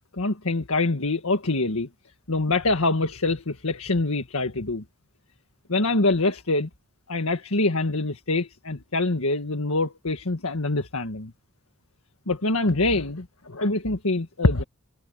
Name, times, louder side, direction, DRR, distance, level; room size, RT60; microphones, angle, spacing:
voice 1, 0.1-1.9 2.3-4.8 5.7-6.7 7.1-11.3 12.3-14.6, left 2 dB, 80° left, 1.8 m, -25 dB
head